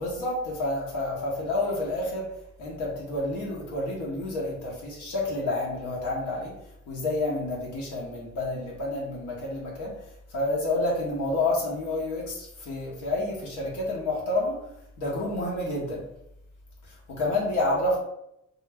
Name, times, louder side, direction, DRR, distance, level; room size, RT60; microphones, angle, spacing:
voice 1, 0.0-2.3 2.6-6.5 6.9-9.9 10.3-14.6 15.0-16.0 16.8-18.0, left 2 dB, 85° left, -4 dB, 0.8 m, -29 dB
2.2 x 2.0 x 3.3 m, 0.80 s
cardioid pair, 90°, 30 cm